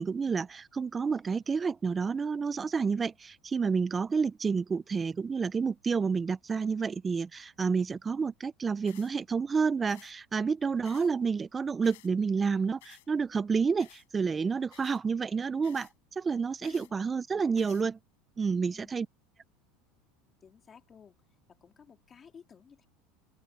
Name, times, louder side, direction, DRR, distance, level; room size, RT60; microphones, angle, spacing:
voice 1, 0.0-15.9 16.2-18.0 18.4-19.1, right 5 dB, 15° right, 0.3 m, -29 dB
sound 1, 8.9-9.1 9.9-10.1 10.8-11.1 11.8-12.1 12.8-13.1 13.8-14.1 14.7-15.0 15.6-15.9 16.6-16.9 17.6-17.9, left 20 dB, 85° left, 5.3 m, -55 dB
voice 2, 16.6-17.0 18.5-19.0 20.4-21.2 21.5-22.9, left 7 dB, 20° left, 3.4 m, -55 dB
supercardioid pair, 165°, 0 cm